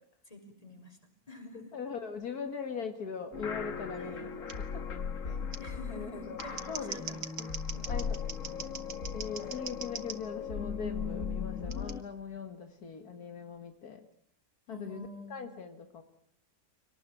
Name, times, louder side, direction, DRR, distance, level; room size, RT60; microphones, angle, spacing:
voice 1, 0.3-1.7 4.0-4.3 5.2-7.4 7.7-8.0 14.7-15.4, left 1 dB, 25° left, 4 dB, 5.5 m, -48 dB
voice 2, 1.7-4.8 5.9-7.5 7.9-8.2 9.1-14.1 14.7-16.0, left 6 dB, 80° left, 7 dB, 2.2 m, -41 dB
sound 1, 3.3-12.0, left 6 dB, 55° left, 1.9 m, -38 dB
Scissors, 4.5-4.6 5.5-5.6 6.2-10.2 11.7-11.9, right 6 dB, 85° right, 2.1 m, -42 dB
25.5 x 19.0 x 9.2 m, 0.66 s
omnidirectional pair, 1.6 m